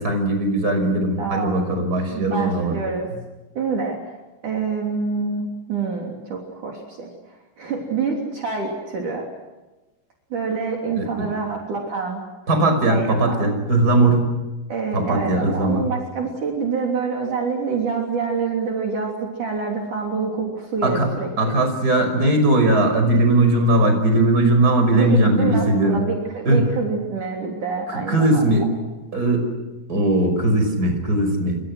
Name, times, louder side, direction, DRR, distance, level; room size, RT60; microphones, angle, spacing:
voice 1, 0.0-2.8 11.0-11.1 12.5-14.3 14.9-15.8 20.8-21.1 21.4-26.0 26.5-26.7 27.9-28.6 29.1-29.5 29.9-31.6, right 2 dB, 20° right, 5 dB, 5.9 m, -19 dB
voice 2, 1.2-1.8 2.1-3.1 3.6-4.0 4.4-9.3 10.3-12.2 12.9-13.5 14.7-21.3 24.9-28.5, right 5 dB, 50° right, 0 dB, 4.6 m, -26 dB
29.5 x 26.0 x 6.3 m, 1.1 s
omnidirectional pair, 4.6 m